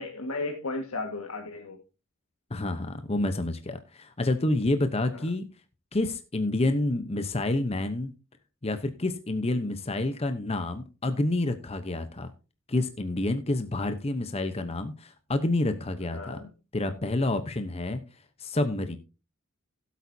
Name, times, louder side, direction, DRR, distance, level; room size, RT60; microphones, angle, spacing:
voice 1, 0.0-1.8 5.1-5.2 16.1-16.5, left 2 dB, 85° left, 2 dB, 1.6 m, -34 dB
voice 2, 2.5-5.5 5.9-8.1 8.6-12.3 12.7-16.4 16.7-18.0 18.4-19.0, left 2 dB, 30° left, 9 dB, 0.8 m, -28 dB
16.5 x 8.3 x 2.7 m, 0.31 s
head